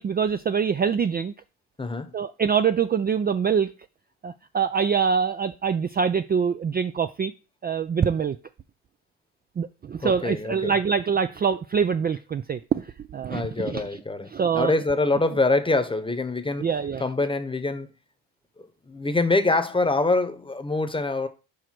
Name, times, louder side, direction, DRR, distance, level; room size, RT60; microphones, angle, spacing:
voice 1, 0.0-1.3 2.1-3.7 4.2-7.3 7.6-8.4 9.6-13.8 14.3-14.7 16.6-17.0, right 6 dB, 25° right, 0.4 m, -24 dB
voice 2, 1.8-2.1 10.0-10.7 13.3-16.7 17.0-17.9 18.9-21.3, left 3 dB, 15° left, 1.0 m, -25 dB
5.0 x 4.8 x 6.0 m
supercardioid pair, 75°, 37 cm